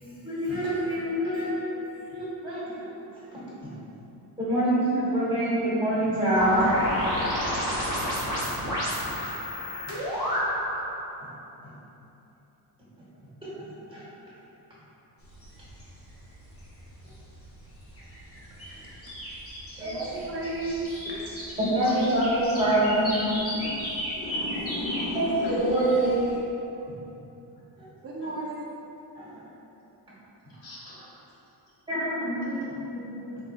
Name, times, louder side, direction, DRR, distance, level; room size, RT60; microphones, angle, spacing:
voice 1, 0.0-3.7 4.4-6.7 11.2-11.3 11.6-11.7 13.4-14.0 19.8-20.0 21.6-23.2 25.1-25.3 26.9-27.0 27.8-27.9 29.1-29.4 31.9-33.4, right 1 dB, 10° right, -10 dB, 1.2 m, -27 dB
sound 1, 6.3-10.9, equal, 50° left, 1.2 m, -29 dB
sound 2, 15.2-26.4, equal, 35° left, 0.7 m, -38 dB
voice 2, 19.8-20.9 21.7-21.9 28.0-28.7, right 2 dB, 35° right, -6 dB, 0.6 m, -34 dB
voice 3, 24.1-26.2 30.6-31.0, right 2 dB, 90° left, -9 dB, 1.4 m, -28 dB
4.4 x 3.8 x 2.2 m, 2.9 s
wide cardioid pair, 155°, 43 cm